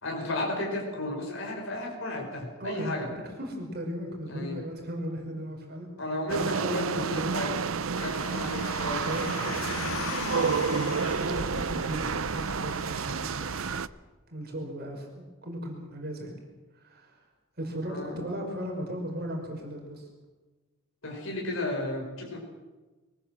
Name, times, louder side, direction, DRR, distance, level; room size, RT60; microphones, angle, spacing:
voice 1, 0.0-3.1 4.3-4.6 6.0-7.5 8.0-9.5 17.8-18.3 21.0-22.4, left 2 dB, 65° left, 0 dB, 5.3 m, -34 dB
voice 2, 2.6-3.1 3.4-5.9 6.4-7.3 9.0-9.8 10.3-13.6 14.3-16.4 16.7-17.2 17.6-20.1, equal, 45° right, 2 dB, 5.3 m, -37 dB
sound 1, 6.3-13.9, right 5 dB, 70° right, 0.6 m, -30 dB
Car, 8.0-13.8, left 3 dB, 80° left, 2.3 m, -38 dB
23.5 x 19.5 x 7.7 m, 1.2 s
head